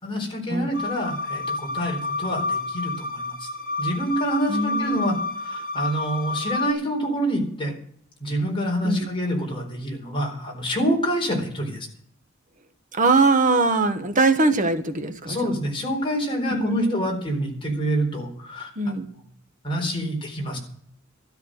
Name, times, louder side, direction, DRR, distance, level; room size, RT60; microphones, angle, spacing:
voice 1, 0.0-3.5 3.8-7.7 8.2-11.9 15.3-18.9 19.6-20.6, equal, 25° left, 4.3 m, -27 dB
sound 1, 0.7-6.7, left 3 dB, 45° left, 2.5 m, -29 dB
voice 2, 4.5-5.2 8.8-9.1 12.9-15.4 16.5-17.1 18.8-19.1, right 3 dB, 40° right, 1.3 m, -22 dB
13.0 x 12.0 x 6.5 m
head